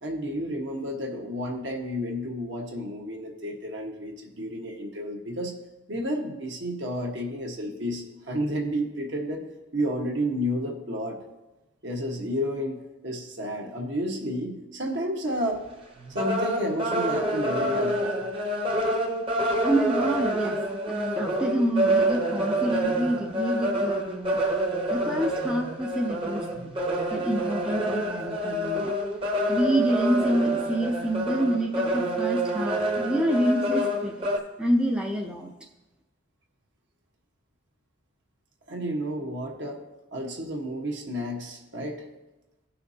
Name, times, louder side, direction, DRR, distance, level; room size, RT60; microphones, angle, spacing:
voice 1, 0.0-5.6 5.9-11.2 11.8-15.6 16.1-18.0 38.7-39.8 40.1-42.0, equal, 60° right, 1 dB, 1.3 m, -31 dB
sound 1, 15.6-15.7 16.0-34.4, right 1 dB, 25° right, 0.9 m, -27 dB
voice 2, 19.6-20.6 20.9-24.4 24.9-26.7 27.1-28.9 29.5-34.3 34.6-35.5, right 1 dB, 5° right, 1 dB, 0.4 m, -27 dB
16.5 x 5.7 x 2.8 m, 1.1 s
head